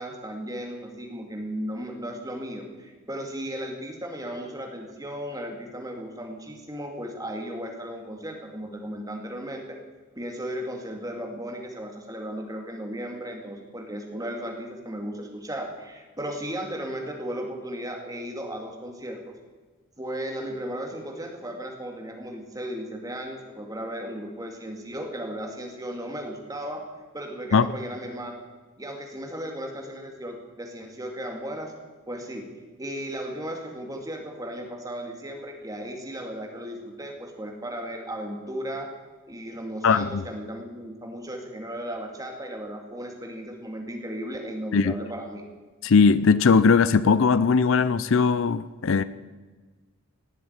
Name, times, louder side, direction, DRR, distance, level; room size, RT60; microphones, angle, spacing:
voice 1, 0.0-9.8 10.2-19.3 20.0-26.8 27.1-28.4 28.8-31.7 32.1-32.5 32.8-38.9 39.3-45.4, equal, 15° right, 2 dB, 2.2 m, -35 dB
voice 2, 39.8-40.2 44.7-44.9 45.8-49.0, left 5 dB, 60° left, 16 dB, 0.5 m, -19 dB
17.5 x 7.7 x 9.6 m, 1.4 s
head